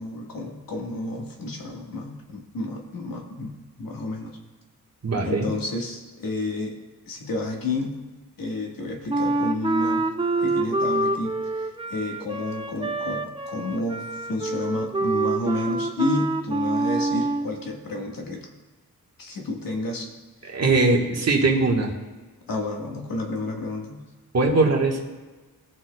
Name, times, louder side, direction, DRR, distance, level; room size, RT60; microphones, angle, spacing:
voice 1, 0.0-4.4 5.2-6.7 7.1-8.0 8.4-10.0 10.4-11.6 11.9-18.5 19.2-20.1 22.5-24.0, left 2 dB, 70° left, 1 dB, 1.7 m, -30 dB
voice 2, 5.0-5.5 20.5-21.9 24.3-25.0, right 3 dB, 45° right, 0 dB, 1.6 m, -21 dB
Wind instrument woodwind instrument, 9.1-17.5, right 2 dB, 15° right, 0.5 m, -26 dB
18.5 x 6.3 x 2.3 m, 1.3 s
wide cardioid pair, 125°, 35 cm